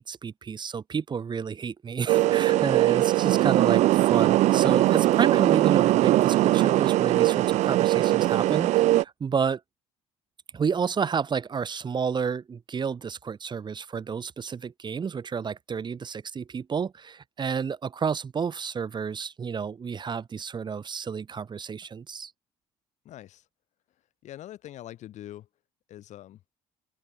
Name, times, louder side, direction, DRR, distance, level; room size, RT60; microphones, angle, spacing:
voice 1, 0.0-9.6 10.5-22.3, right 6 dB, 35° right, 1.5 m, -30 dB
sound 1, 2.1-9.0, right 15 dB, 65° right, 0.4 m, -21 dB
voice 2, 23.0-23.4 24.2-25.5 25.9-26.4, left 13 dB, 65° left, 3.0 m, -43 dB
open air
supercardioid pair, 85°, 13 cm